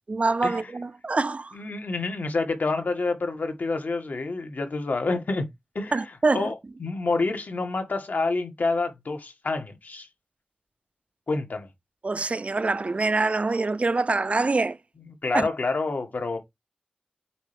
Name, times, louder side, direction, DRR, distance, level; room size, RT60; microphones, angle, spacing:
voice 1, 0.1-1.6 5.9-6.5 12.0-14.8 15.3-15.5, right 3 dB, 45° right, 0.4 m, -25 dB
voice 2, 1.5-5.5 5.8-6.1 6.3-6.5 6.8-10.1 11.3-11.7 15.0-16.4, left 3 dB, 80° left, 1.9 m, -28 dB
8.2 x 4.5 x 3.4 m
wide cardioid pair, 80°, 3 cm